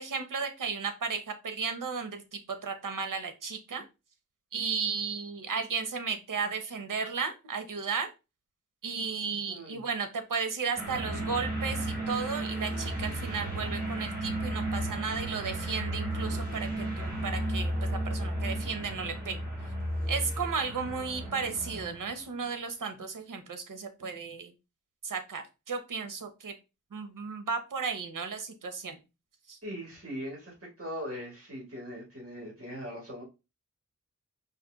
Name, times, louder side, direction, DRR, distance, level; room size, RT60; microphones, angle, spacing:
voice 1, 0.0-3.8 4.5-8.1 8.8-19.4 20.1-24.5 25.0-26.5 26.9-29.0 29.5-29.6, right 5 dB, 85° right, 8 dB, 1.0 m, -34 dB
voice 2, 9.5-9.8 29.6-33.2, equal, 45° right, -2 dB, 2.7 m, -40 dB
sound 1, 10.7-22.2, right 1 dB, 30° right, 2.5 m, -34 dB
5.1 x 2.7 x 3.9 m, 0.27 s
wide cardioid pair, 80°, 31 cm